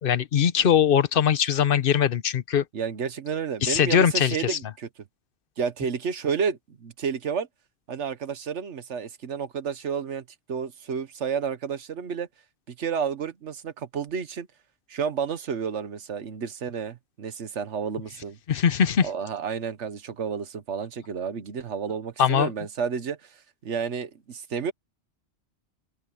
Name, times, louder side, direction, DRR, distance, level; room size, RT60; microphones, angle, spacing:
voice 1, 0.0-2.6 3.6-4.6 18.5-19.1 22.2-22.5, left 8 dB, 55° left, 0.9 m, -21 dB
voice 2, 2.7-4.9 5.6-7.5 7.9-12.3 12.7-14.5 14.9-18.4 19.0-24.7, right 6 dB, 80° right, 1.4 m, -31 dB
open air
omnidirectional pair, 1.2 m